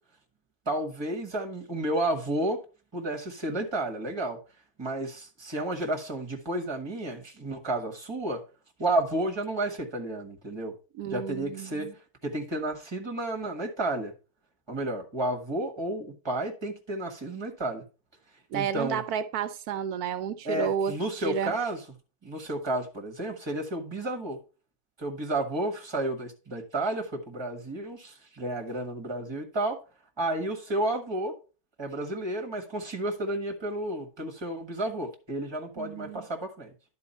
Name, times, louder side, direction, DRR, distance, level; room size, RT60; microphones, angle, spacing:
voice 1, 0.6-2.6 2.9-4.4 4.8-8.4 8.8-10.7 11.1-11.9 12.2-14.1 14.7-17.8 18.5-19.0 20.4-21.8 22.2-24.4 25.0-29.8 30.2-31.3 31.8-36.7, right 1 dB, 20° right, 1.5 m, -31 dB
voice 2, 11.0-11.9 18.5-21.6 35.8-36.2, right 8 dB, 80° right, 1.1 m, -31 dB
11.0 x 4.5 x 4.2 m
omnidirectional pair, 1.6 m